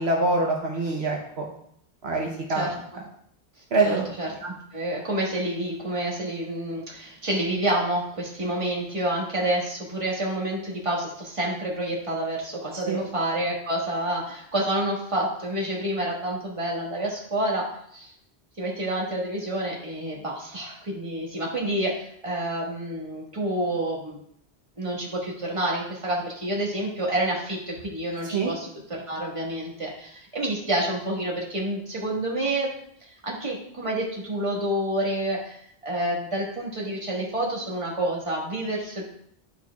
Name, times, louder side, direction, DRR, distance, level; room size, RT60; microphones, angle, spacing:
voice 1, 0.0-1.5 2.0-2.7 3.7-4.1 12.7-13.0 28.3-28.5, right 3 dB, 70° right, 0 dB, 1.1 m, -25 dB
voice 2, 2.5-3.0 3.8-17.7 17.9-18.1 18.6-24.2 24.8-32.7 33.0-39.0, right 1 dB, 30° right, -4 dB, 1.6 m, -28 dB
11.0 x 4.5 x 2.3 m, 0.69 s
omnidirectional pair, 1.1 m